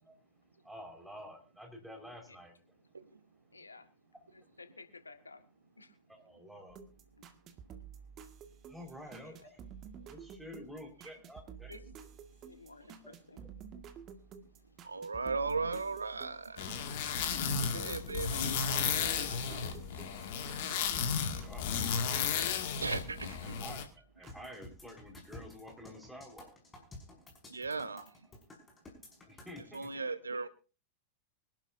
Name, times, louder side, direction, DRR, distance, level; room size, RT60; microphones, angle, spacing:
voice 1, 0.6-2.5 6.1-6.8 8.7-9.6 10.1-11.7 13.0-13.2 21.4-21.9 23.4-23.8 24.2-26.5 29.3-29.9, equal, 5° right, 2 dB, 4.8 m, -49 dB
voice 2, 3.5-3.9 4.3-5.4 5.8-5.9 9.1-9.3 11.7-11.8 12.5-13.4, left 3 dB, 80° left, 8 dB, 1.6 m, -53 dB
sound 1, 6.7-22.5 22.8-24.4, right 7 dB, 35° right, 1.8 m, -52 dB
voice 3, 14.8-16.8 17.1-17.2 17.6-20.3 22.8-23.6 27.5-28.1 29.7-30.5, right 4 dB, 75° right, 15 dB, 1.0 m, -38 dB
sound 2, 16.6-23.8, left 6 dB, 50° left, 2.1 m, -34 dB
sound 3, 24.3-29.9, left 2 dB, 15° left, 5.8 m, -52 dB
24.5 x 12.0 x 2.7 m, 0.34 s
figure-of-eight pair, 90°, 0 cm